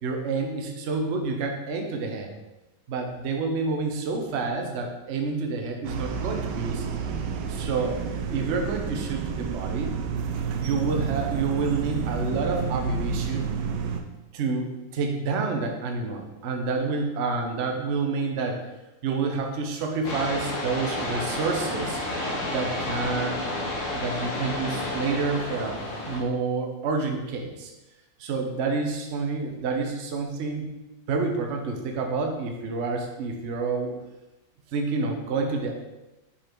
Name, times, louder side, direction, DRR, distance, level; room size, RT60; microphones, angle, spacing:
voice 1, 0.0-2.3 2.9-6.9 7.5-8.0 8.3-9.9 10.6-13.5 14.3-18.6 19.0-22.0 22.5-23.4 23.9-27.7 28.2-30.7 31.1-33.9 34.7-35.8, right 4 dB, 50° right, 3 dB, 0.9 m, -28 dB
sound 1, 5.8-14.0, right 6 dB, 80° right, 1.2 m, -30 dB
sound 2, 20.0-26.2, left 1 dB, 50° left, 1.5 m, -31 dB
5.3 x 4.3 x 4.5 m, 1.0 s
omnidirectional pair, 1.9 m